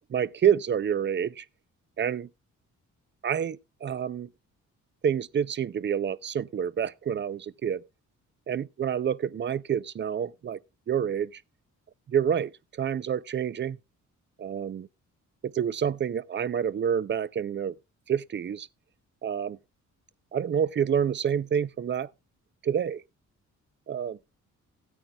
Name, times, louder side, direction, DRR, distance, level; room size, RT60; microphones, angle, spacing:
voice 1, 0.1-1.4 2.0-2.3 3.2-4.3 5.0-7.8 8.5-10.6 10.9-11.4 12.1-12.5 12.8-13.8 14.4-14.9 15.4-17.7 18.1-18.7 19.2-19.6 20.3-22.1 22.6-23.0 23.9-24.2, right 8 dB, 35° right, 0.4 m, -28 dB
16.5 x 9.1 x 2.2 m
cardioid pair, 90°, 31 cm